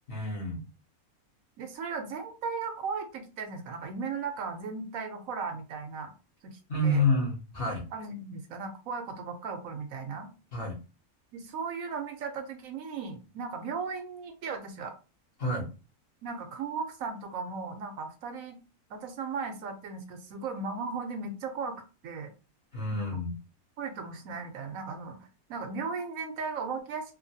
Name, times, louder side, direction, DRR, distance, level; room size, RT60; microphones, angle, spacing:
voice 1, 0.1-0.6 6.7-7.9 10.5-10.8 15.4-15.7 22.7-23.3, left 1 dB, 45° left, -2 dB, 1.0 m, -28 dB
voice 2, 1.6-6.1 6.4-7.0 7.9-10.3 11.3-14.9 16.2-18.6 18.9-22.3 22.9-23.2 23.8-25.2 25.5-27.1, right 4 dB, 70° right, 5 dB, 1.0 m, -36 dB
3.1 x 2.2 x 2.7 m, 0.32 s
omnidirectional pair, 1.5 m